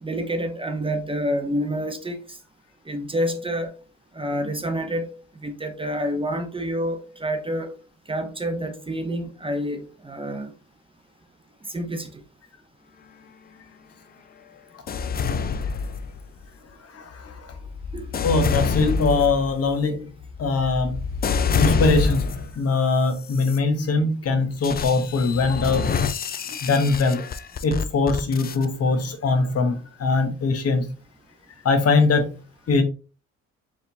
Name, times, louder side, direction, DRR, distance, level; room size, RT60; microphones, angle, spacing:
voice 1, 0.0-2.2 2.9-3.7 4.2-5.1 5.4-7.7 8.1-10.5 11.7-12.1 17.9-18.1, equal, 20° right, 0.6 m, -28 dB
sound 1, 14.9-16.4 17.1-22.6 23.2-23.6 24.6-28.7, left 5 dB, 30° left, 0.4 m, -27 dB
voice 2, 16.9-17.6 18.2-20.1 20.4-21.0 21.5-25.9 26.6-27.2 27.6-30.9 31.6-32.3 32.7-32.8, left 3 dB, 55° left, 0.9 m, -22 dB
4.5 x 3.6 x 2.7 m
cardioid pair, 90°, 30 cm